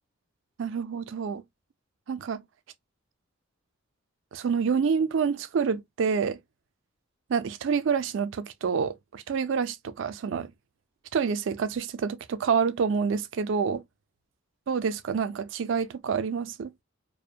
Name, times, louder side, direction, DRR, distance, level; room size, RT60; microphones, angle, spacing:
voice 1, 0.6-1.4 2.1-2.4 4.3-6.4 7.3-10.5 11.1-13.8 14.7-16.7, right 6 dB, 60° right, 0.3 m, -27 dB
2.5 x 2.1 x 2.6 m
head